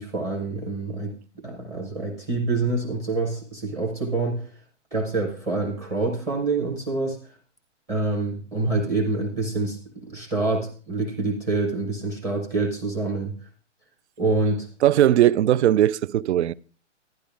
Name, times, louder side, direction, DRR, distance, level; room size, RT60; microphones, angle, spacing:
voice 1, 0.0-4.5 4.9-7.2 7.9-13.3 14.2-14.7, right 3 dB, 10° right, 0.6 m, -26 dB
voice 2, 14.8-16.5, right 12 dB, 65° right, 0.5 m, -19 dB
12.0 x 9.5 x 3.4 m
hypercardioid pair, 165°, 37 cm